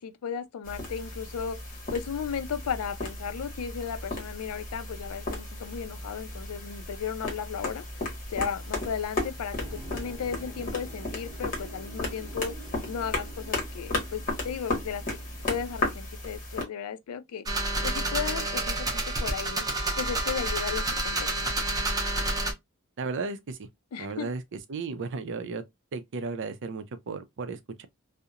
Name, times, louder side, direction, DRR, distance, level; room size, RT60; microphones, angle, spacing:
voice 1, 0.0-1.6 1.9-7.9 8.3-12.5 12.9-15.0 15.5-17.4 17.8-19.7 20.0-21.5 23.9-24.3, left 7 dB, 90° left, 0.4 m, -35 dB
sound 1, 0.6-16.6, left 2 dB, 40° left, 1.1 m, -35 dB
sound 2, 9.6-15.9, right 2 dB, 25° left, 1.3 m, -48 dB
sound 3, 17.5-22.5, right 2 dB, 20° right, 0.7 m, -29 dB
voice 2, 23.0-23.7 24.0-25.6 25.9-27.9, right 4 dB, 60° right, 0.4 m, -34 dB
2.8 x 2.0 x 2.4 m
head